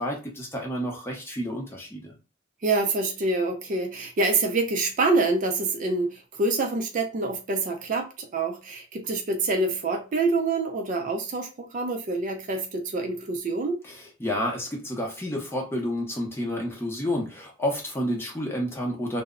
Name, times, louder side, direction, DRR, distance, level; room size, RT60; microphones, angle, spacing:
voice 1, 0.0-2.1 13.9-19.2, equal, 10° left, 0.6 m, -30 dB
voice 2, 2.6-13.8, right 3 dB, 40° right, 0.3 m, -26 dB
2.1 x 2.0 x 3.5 m
head